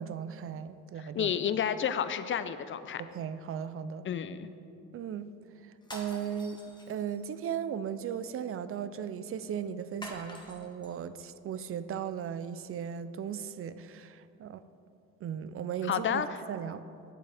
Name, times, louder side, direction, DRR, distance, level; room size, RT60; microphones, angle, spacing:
voice 1, 0.0-1.3 3.0-4.1 4.9-5.3 5.6-6.6 6.9-14.6 15.2-16.2 16.5-16.8, right 8 dB, 45° right, 13 dB, 0.4 m, -37 dB
voice 2, 1.0-3.0 4.0-4.5 15.8-16.4, left 8 dB, 40° left, 12 dB, 0.5 m, -31 dB
sound 1, 5.8-7.3 10.0-10.9, left 1 dB, 15° left, 1.5 m, -46 dB
10.5 x 8.3 x 3.4 m, 2.8 s
cardioid pair, 90°, 30 cm